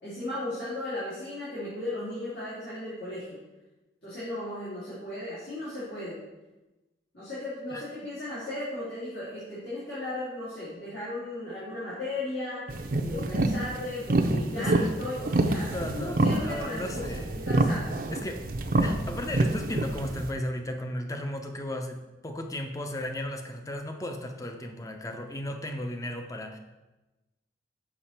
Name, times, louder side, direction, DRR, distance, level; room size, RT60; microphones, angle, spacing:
voice 1, 0.0-3.4 4.0-6.2 7.1-18.0, left 1 dB, 75° left, -11 dB, 2.7 m, -36 dB
sound 1, 12.7-20.3, right 2 dB, 50° right, 0.6 m, -27 dB
voice 2, 14.6-14.9 15.7-17.4 18.1-18.4 18.8-22.0 22.2-26.6, left 1 dB, 20° left, 5 dB, 0.6 m, -35 dB
7.0 x 5.5 x 4.3 m, 1.1 s
head